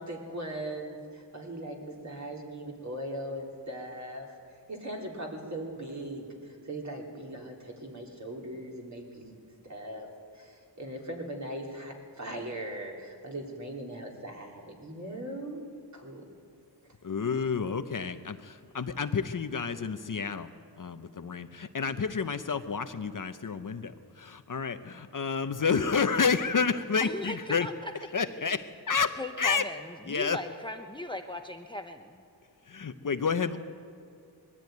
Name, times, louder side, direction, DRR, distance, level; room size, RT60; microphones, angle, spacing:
voice 1, 0.0-4.4 4.7-9.4 9.6-15.6 15.9-16.2, right 1 dB, 40° right, 0 dB, 3.4 m, -39 dB
voice 2, 17.0-20.5 20.8-23.9 24.2-27.7 28.1-29.7 30.1-30.4 32.7-33.6, left 5 dB, 50° left, 9 dB, 0.8 m, -30 dB
voice 3, 27.0-27.9 28.4-28.5 29.2-32.2, left 1 dB, 10° left, 5 dB, 0.8 m, -38 dB
21.0 x 13.5 x 9.3 m, 2.5 s
wide cardioid pair, 115°, 42 cm